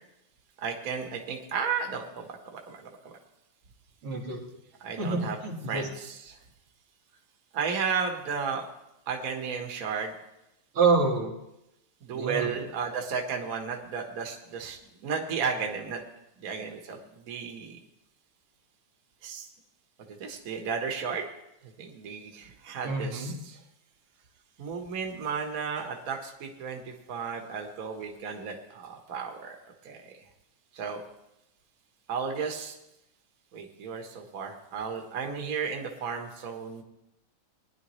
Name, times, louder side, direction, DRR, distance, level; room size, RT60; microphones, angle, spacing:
voice 1, 0.6-3.1 4.8-5.4 5.7-6.3 7.5-8.6 9.1-10.1 12.0-14.8 15.0-16.0 16.4-17.8 19.2-19.5 20.1-21.2 21.8-23.3 24.6-26.8 27.1-29.6 29.8-30.1 30.7-31.0 32.1-32.7 33.5-36.8, right 6 dB, 50° right, 3 dB, 1.5 m, -33 dB
voice 2, 4.0-4.4 5.0-5.9 10.7-11.4 12.1-12.6 22.8-23.3, right 4 dB, 90° right, -1 dB, 2.7 m, -27 dB
20.0 x 10.5 x 3.1 m, 0.88 s
omnidirectional pair, 2.2 m